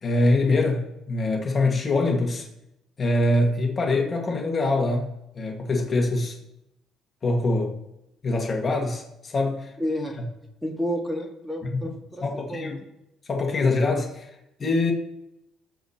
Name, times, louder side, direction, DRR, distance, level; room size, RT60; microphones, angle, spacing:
voice 1, 0.0-2.5 3.0-6.4 7.2-7.7 8.2-9.7 11.7-11.8 12.2-12.8 13.3-14.3 14.6-14.9, left 2 dB, 35° left, 1.7 m, -24 dB
voice 2, 9.8-10.2 10.6-12.8, equal, ahead, 1.9 m, -31 dB
19.5 x 7.0 x 2.9 m
cardioid pair, 110°, 0 cm